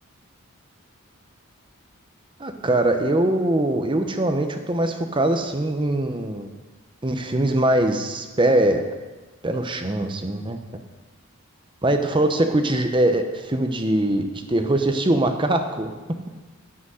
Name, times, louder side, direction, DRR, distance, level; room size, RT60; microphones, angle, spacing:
voice 1, 2.4-6.5 7.0-8.9 9.4-10.6 11.8-15.9, right 1 dB, 25° right, 6 dB, 0.8 m, -22 dB
9.7 x 8.2 x 6.3 m, 1.2 s
head